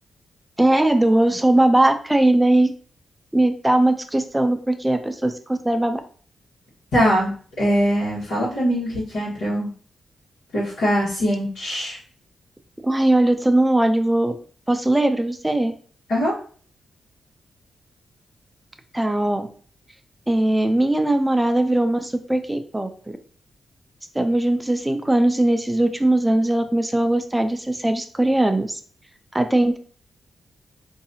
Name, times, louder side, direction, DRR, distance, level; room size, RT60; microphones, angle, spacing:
voice 1, 0.6-2.7 3.3-6.0 12.8-14.3 14.7-15.7 18.9-19.5 20.3-23.2 24.1-28.8 29.3-29.8, right 1 dB, 10° right, 7 dB, 0.4 m, -20 dB
voice 2, 6.9-7.3 7.6-9.7 10.5-12.0 16.1-16.3, equal, 85° left, -9 dB, 1.5 m, -22 dB
4.0 x 2.7 x 2.7 m, 0.43 s
wide cardioid pair, 115°, 0 cm